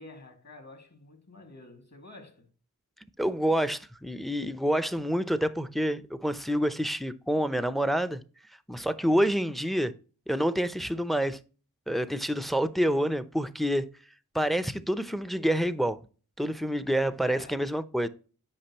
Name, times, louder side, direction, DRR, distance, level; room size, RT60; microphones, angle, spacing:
voice 1, 0.0-2.5 17.2-17.7 18.0-18.1, left 2 dB, 45° left, 2.4 m, -49 dB
voice 2, 3.2-8.2 8.7-9.9 10.3-11.4 11.9-13.9 14.3-16.0 16.4-18.1, equal, ahead, 0.6 m, -27 dB
8.6 x 5.2 x 2.9 m
cardioid pair, 45°, 36 cm